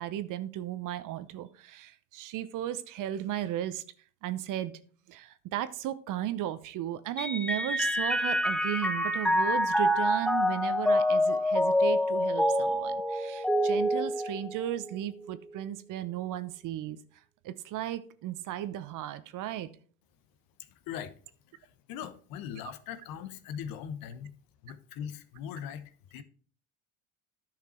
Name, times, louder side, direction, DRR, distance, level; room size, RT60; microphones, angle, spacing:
voice 1, 0.0-3.8 4.2-4.7 5.1-17.0 17.4-19.7, right 12 dB, 45° right, 0.9 m, -35 dB
Mallet percussion, 7.2-14.9, left 1 dB, ahead, 0.5 m, -27 dB
voice 2, 20.6-21.1 21.6-24.3 24.6-26.2, left 9 dB, 55° left, 1.1 m, -40 dB
10.5 x 5.9 x 4.4 m
hypercardioid pair, 85°, 43 cm